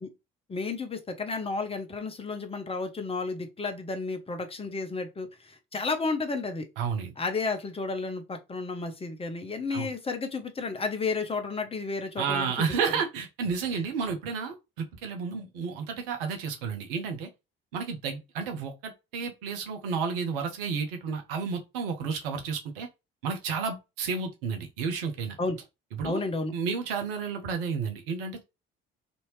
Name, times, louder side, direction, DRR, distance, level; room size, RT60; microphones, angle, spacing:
voice 1, 0.5-6.6 7.2-12.7 25.4-25.6 26.0-26.5, left 3 dB, 20° left, 0.8 m, -32 dB
voice 2, 6.8-7.1 9.7-9.9 12.2-17.3 17.7-22.9 23.2-25.4 26.0-26.2 26.5-28.4, right 5 dB, 70° right, 0.7 m, -31 dB
2.8 x 2.6 x 3.1 m
figure-of-eight pair, 45°, 29 cm